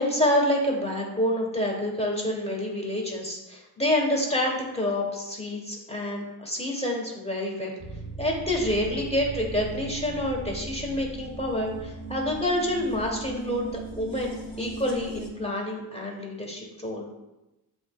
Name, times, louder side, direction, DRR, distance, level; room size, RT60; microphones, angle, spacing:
voice 1, 0.0-7.7 8.2-17.0, left 1 dB, 15° left, -1 dB, 1.1 m, -28 dB
sound 1, 7.8-15.3, right 2 dB, 45° left, 1.0 m, -38 dB
7.5 x 3.0 x 2.3 m, 0.96 s
wide cardioid pair, 50°, 38 cm